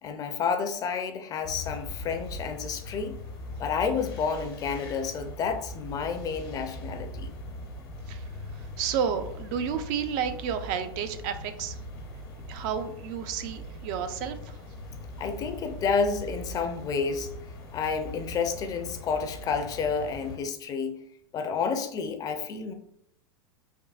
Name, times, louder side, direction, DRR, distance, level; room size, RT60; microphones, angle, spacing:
voice 1, 0.0-3.2 3.6-7.3 15.2-17.3 17.7-21.0 21.3-22.7, left 5 dB, 30° left, 7 dB, 0.4 m, -30 dB
sound 1, 1.4-20.4, left 1 dB, 85° left, 1.0 m, -41 dB
voice 2, 8.6-11.8 12.5-14.6, right 7 dB, 55° right, 9 dB, 0.5 m, -31 dB
3.6 x 2.6 x 2.3 m, 0.71 s
hypercardioid pair, 105°, 13 cm